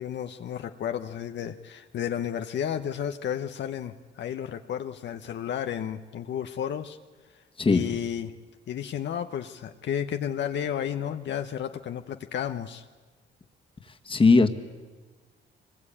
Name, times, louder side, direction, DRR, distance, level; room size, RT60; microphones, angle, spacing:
voice 1, 0.0-7.0 7.3-8.3 8.7-12.9, left 9 dB, 65° left, 7 dB, 0.9 m, -32 dB
voice 2, 7.6-7.9 14.1-14.5, left 3 dB, 25° left, 5 dB, 1.7 m, -19 dB
24.0 x 21.0 x 8.7 m, 1.3 s
cardioid pair, 90°, 20 cm